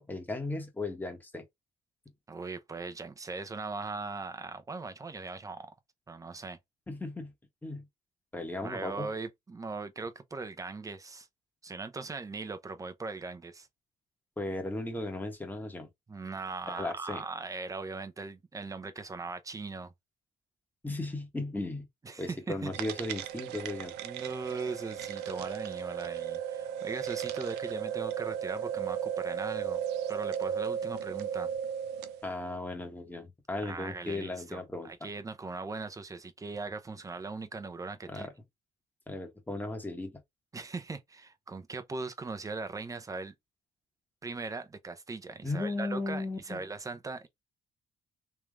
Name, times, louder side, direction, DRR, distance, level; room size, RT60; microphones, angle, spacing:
voice 1, 0.0-1.4 6.9-7.3 7.6-7.8 8.3-9.1 14.4-15.9 16.7-17.2 20.8-21.8 22.2-23.9 32.2-34.9 38.1-38.3 39.1-40.1 45.4-46.6, left 2 dB, 10° left, 1.4 m, -36 dB
voice 2, 2.3-5.7 6.1-6.6 8.6-11.3 11.6-13.7 16.1-19.9 22.0-22.7 24.0-29.8 30.1-31.5 33.6-38.3 40.5-43.3 44.2-47.3, right 3 dB, 20° right, 0.8 m, -39 dB
sound 1, 22.7-32.2, right 9 dB, 85° right, 0.6 m, -35 dB
3.4 x 3.1 x 3.5 m
cardioid pair, 110°, 17 cm